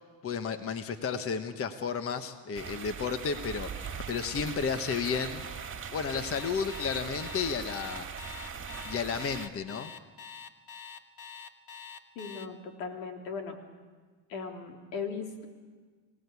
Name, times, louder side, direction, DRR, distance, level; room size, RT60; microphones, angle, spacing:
voice 1, 0.2-5.5 5.9-8.1 8.8-9.9, left 6 dB, 30° left, 9 dB, 1.2 m, -32 dB
sound 1, 2.5-9.5, right 6 dB, 25° right, 2.0 m, -40 dB
Alarm, 6.3-12.5, left 7 dB, 45° left, 1.5 m, -45 dB
voice 2, 12.2-13.6 14.3-15.5, left 5 dB, 80° left, 3 dB, 3.6 m, -38 dB
25.5 x 17.5 x 8.3 m, 1.4 s
supercardioid pair, 110°, 49 cm